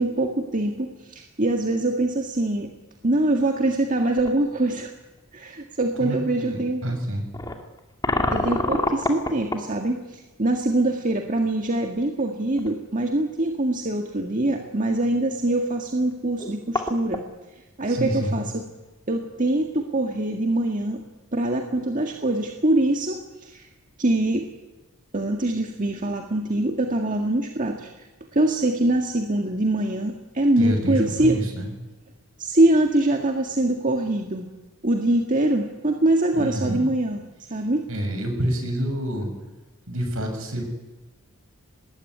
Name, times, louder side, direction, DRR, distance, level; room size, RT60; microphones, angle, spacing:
voice 1, 0.0-2.7 3.0-4.9 5.3-7.0 8.3-17.2 17.8-18.6 19.1-21.0 21.3-23.7 24.0-24.5 25.1-28.1 28.3-31.4 32.4-34.5 34.8-37.2 37.5-37.8, right 1 dB, 35° right, 3 dB, 1.9 m, -23 dB
sound 1, 4.2-4.4 5.2-5.3 7.3-9.7 12.2-12.3 12.6-12.7 16.1-16.2 16.4-17.3, left 2 dB, 15° left, 2.4 m, -26 dB
voice 2, 6.0-7.3 17.9-18.4 30.6-31.7 36.3-36.8 37.9-39.3 39.9-40.6, equal, 65° right, 4 dB, 7.1 m, -27 dB
25.5 x 20.0 x 9.9 m, 1.1 s
head